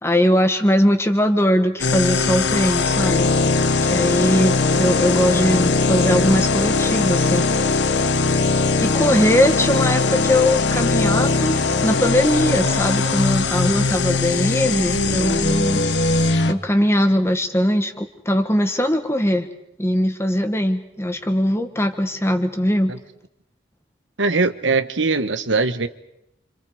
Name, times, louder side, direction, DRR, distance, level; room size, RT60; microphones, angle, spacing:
voice 1, 0.0-3.3 3.9-7.4 8.8-15.8 16.5-19.5 19.8-22.9, equal, 15° left, 7 dB, 1.6 m, -20 dB
sound 1, 1.8-16.5, left 3 dB, 70° left, 1.1 m, -20 dB
voice 2, 24.2-25.9, right 3 dB, 85° right, 10 dB, 1.3 m, -21 dB
29.0 x 27.0 x 5.0 m, 0.85 s
head